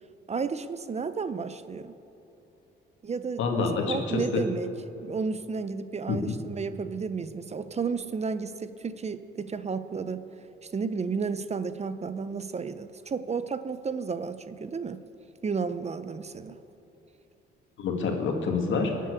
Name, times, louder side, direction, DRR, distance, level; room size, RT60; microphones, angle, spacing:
voice 1, 0.3-1.9 3.0-4.7 5.0-10.2 10.7-15.0 15.4-16.6, right 5 dB, 35° right, 12 dB, 0.7 m, -32 dB
voice 2, 3.4-4.4 6.1-6.4 17.8-18.9, left 4 dB, 75° left, 2 dB, 2.2 m, -27 dB
21.0 x 7.6 x 8.2 m, 2.9 s
cardioid pair, 90°, 20 cm